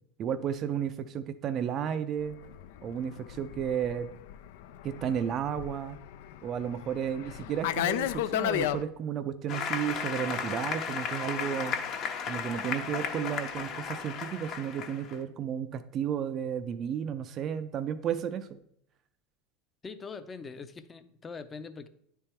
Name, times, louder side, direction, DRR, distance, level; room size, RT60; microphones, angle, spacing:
voice 1, 0.2-2.4 2.8-4.1 4.8-6.0 6.4-11.8 12.3-18.6, right 8 dB, 40° right, 9 dB, 0.4 m, -33 dB
Fixed-wing aircraft airplane, 2.3-8.8, left 12 dB, 75° left, 0.3 m, -34 dB
Applause, 9.5-15.2, left 6 dB, 50° left, 0.9 m, -34 dB
voice 2, 19.8-21.9, left 4 dB, 20° left, 11 dB, 0.6 m, -42 dB
9.6 x 3.5 x 4.3 m, 0.70 s
supercardioid pair, 110°, 0 cm